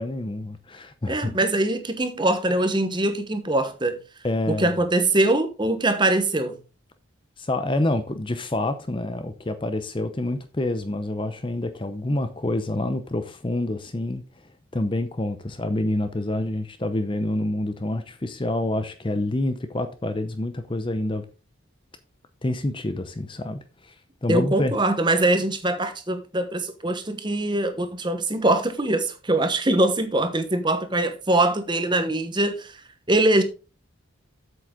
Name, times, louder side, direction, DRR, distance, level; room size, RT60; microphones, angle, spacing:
voice 1, 0.0-1.3 4.2-4.7 7.4-14.2 14.7-21.2 22.4-23.9 24.2-24.7, left 1 dB, 25° left, 0.6 m, -27 dB
voice 2, 1.1-4.0 4.6-6.6 24.3-33.4, right 2 dB, 20° right, 1.0 m, -23 dB
7.9 x 7.5 x 3.7 m
head